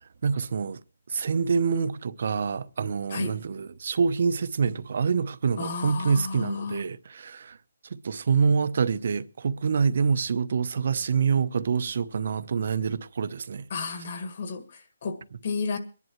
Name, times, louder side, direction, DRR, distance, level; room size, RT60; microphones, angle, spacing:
voice 1, 0.2-0.8 1.1-7.6 8.0-13.6, right 5 dB, 45° right, 0.8 m, -26 dB
voice 2, 5.6-6.8 13.7-15.8, left 4 dB, 35° left, 1.7 m, -32 dB
24.0 x 11.0 x 3.0 m
hypercardioid pair, 175°, 0 cm